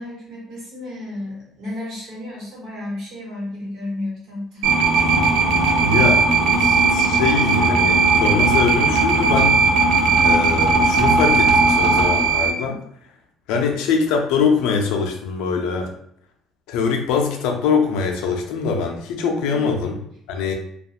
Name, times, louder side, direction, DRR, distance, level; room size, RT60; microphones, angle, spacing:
voice 1, 0.0-4.8 19.4-19.8, left 1 dB, 70° right, -4 dB, 1.4 m, -32 dB
sound 1, 4.6-12.5, right 3 dB, 90° right, 0.4 m, -17 dB
voice 2, 5.8-6.3 6.6-9.6 10.2-12.8 13.5-15.9 16.7-20.0 20.3-20.5, left 5 dB, 90° left, 3 dB, 0.5 m, -23 dB
2.4 x 2.3 x 2.8 m, 0.69 s
cardioid pair, 105°, 0 cm